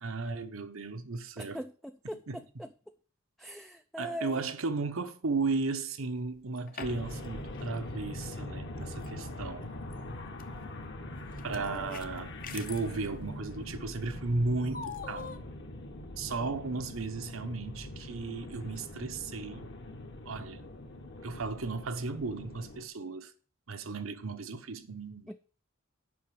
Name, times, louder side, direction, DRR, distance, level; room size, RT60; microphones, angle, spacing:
voice 1, 0.0-1.6 2.1-2.4 4.0-9.7 11.4-15.5 16.2-19.7 20.2-20.7 21.2-23.3 23.7-25.3, right 3 dB, 75° right, 1.0 m, -35 dB
voice 2, 1.4-2.7 3.4-4.4 11.6-12.0 25.3-25.4, equal, ahead, 0.4 m, -41 dB
sound 1, 6.3-7.3 7.5-7.7 9.0-9.1 9.9-10.4 11.3-12.9 14.7-15.4, left 6 dB, 40° left, 0.8 m, -43 dB
sound 2, 6.8-22.9, left 1 dB, 60° left, 1.5 m, -43 dB
7.6 x 5.6 x 7.7 m
head